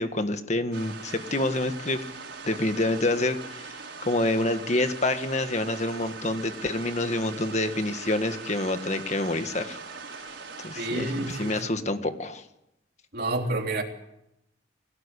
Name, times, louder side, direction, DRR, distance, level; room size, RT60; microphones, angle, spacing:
voice 1, 0.0-2.0 2.5-3.7 4.0-9.8 10.6-12.4, left 2 dB, 40° left, 8 dB, 1.6 m, -27 dB
sound 1, 0.7-11.6, right 4 dB, 80° right, 5.0 m, -41 dB
voice 2, 10.8-11.5 13.1-13.8, right 2 dB, 55° right, 2 dB, 3.3 m, -29 dB
21.5 x 17.5 x 8.4 m, 0.86 s
head